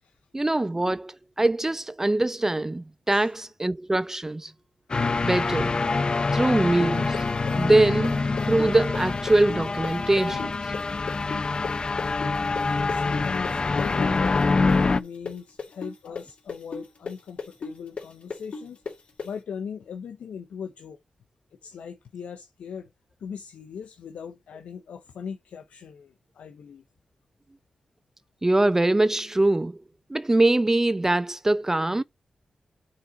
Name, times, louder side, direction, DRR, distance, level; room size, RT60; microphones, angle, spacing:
voice 1, 0.3-4.5 5.2-5.8 6.3-7.2 7.6-8.2 8.5-10.4 28.4-29.8 30.1-32.0, right 2 dB, 20° right, 0.3 m, -23 dB
sound 1, 4.9-15.0, left 3 dB, 45° left, 0.4 m, -25 dB
sound 2, 6.8-14.4 14.7-19.3, left 4 dB, 60° left, 2.1 m, -35 dB
voice 2, 10.3-10.6 12.1-14.4 14.8-18.8 19.2-21.0 21.6-22.9 23.2-26.8, left 7 dB, 85° left, 0.7 m, -39 dB
7.6 x 3.9 x 5.1 m
cardioid pair, 45°, 2 cm